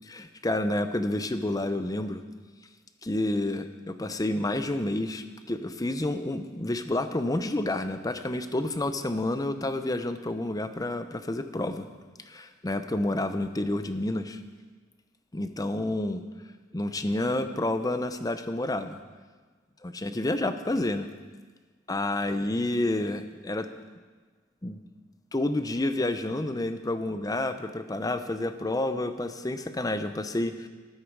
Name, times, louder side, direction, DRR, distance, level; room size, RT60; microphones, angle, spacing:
voice 1, 0.1-2.2 3.0-11.9 12.3-14.4 15.3-16.2 16.7-19.0 19.8-21.1 21.9-23.7 24.6-24.8 25.3-30.7, left 1 dB, 20° left, 9 dB, 0.7 m, -29 dB
13.0 x 12.5 x 4.7 m, 1.4 s
head